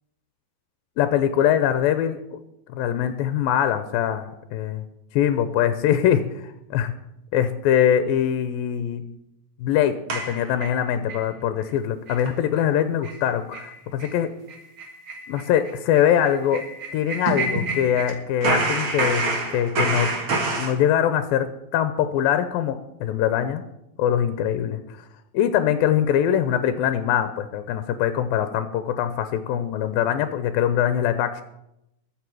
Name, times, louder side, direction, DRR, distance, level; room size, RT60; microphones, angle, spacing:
voice 1, 1.0-2.4 2.7-4.8 5.1-6.9 7.3-9.0 9.6-14.3 15.3-16.6 16.9-20.1 20.6-23.7 24.0-24.8 25.3-31.4, left 10 dB, 80° left, 10 dB, 2.3 m, -23 dB
sound 1, 10.1-11.2 11.6-11.7 12.1-12.3 12.6-12.7 13.0-13.2 13.5-13.7 14.0-14.1 14.5-18.1 18.4-20.7, right 3 dB, 45° right, 1.9 m, -27 dB
21.5 x 7.3 x 4.7 m, 0.86 s
omnidirectional pair, 4.3 m